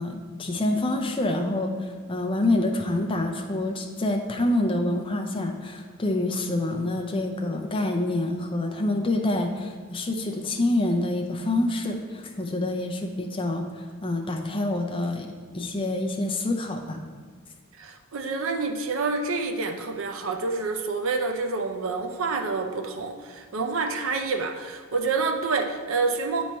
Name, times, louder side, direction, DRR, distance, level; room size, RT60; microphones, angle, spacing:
voice 1, 0.0-15.3 15.5-17.0, left 2 dB, 25° left, 3 dB, 0.5 m, -27 dB
voice 2, 17.8-26.4, right 4 dB, 65° right, 5 dB, 0.5 m, -28 dB
8.2 x 3.1 x 4.3 m, 1.5 s
head